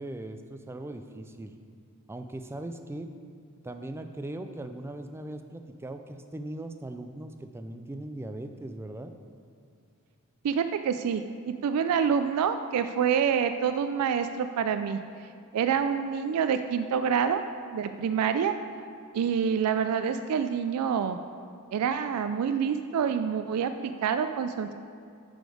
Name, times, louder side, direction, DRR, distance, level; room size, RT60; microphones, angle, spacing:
voice 1, 0.0-1.5 2.1-3.1 3.6-9.1, right 1 dB, 10° right, 7 dB, 0.3 m, -39 dB
voice 2, 10.4-15.0 15.5-17.4 17.7-18.5 19.1-21.2 21.7-24.7, right 7 dB, 90° right, 9 dB, 0.3 m, -27 dB
7.7 x 5.1 x 4.9 m, 2.4 s
head